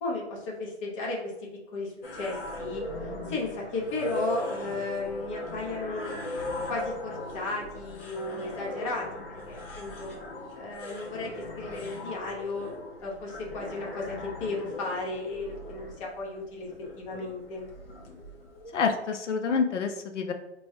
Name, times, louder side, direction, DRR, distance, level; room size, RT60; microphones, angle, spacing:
voice 1, 0.0-1.3 1.7-2.8 3.3-6.1 6.7-10.1 10.5-12.7 13.0-16.7 17.0-17.7, left 3 dB, 25° left, -2 dB, 0.9 m, -34 dB
sound 1, 2.0-18.9, left 1 dB, 55° left, 1.1 m, -39 dB
voice 2, 18.7-20.3, left 5 dB, 80° left, 5 dB, 0.7 m, -27 dB
4.5 x 3.1 x 2.7 m, 0.98 s
hypercardioid pair, 155°, 35 cm